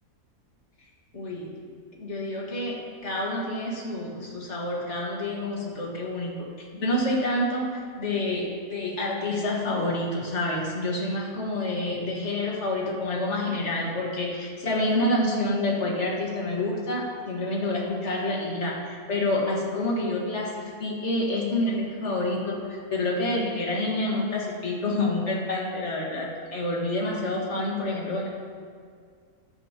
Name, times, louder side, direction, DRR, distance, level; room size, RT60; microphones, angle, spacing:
voice 1, 1.1-1.5 1.9-28.3, left 1 dB, 50° left, -3 dB, 2.0 m, -28 dB
13.5 x 10.0 x 3.0 m, 2.1 s
omnidirectional pair, 1.6 m